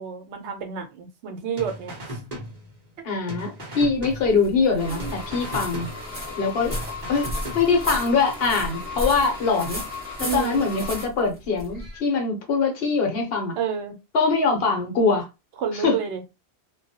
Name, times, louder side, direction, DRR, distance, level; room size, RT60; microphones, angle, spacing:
voice 1, 0.0-2.2 3.7-3.8 4.8-5.1 5.5-5.6 10.2-10.7 13.6-14.0 15.6-16.2, right 7 dB, 75° right, 0.9 m, -30 dB
sound 1, 1.6-3.0 3.3-4.7 5.0-6.4 6.7-8.0, right 1 dB, 40° right, 0.8 m, -38 dB
voice 2, 3.0-5.9 6.4-6.8 7.1-7.3 7.5-9.8 10.2-13.6 14.1-15.3 15.7-16.0, left 4 dB, 60° left, 0.9 m, -23 dB
sound 2, 3.8-12.0, equal, 10° right, 1.1 m, -35 dB
sound 3, 4.8-11.1, left 4 dB, 35° left, 0.8 m, -37 dB
2.2 x 2.1 x 2.7 m
omnidirectional pair, 1.2 m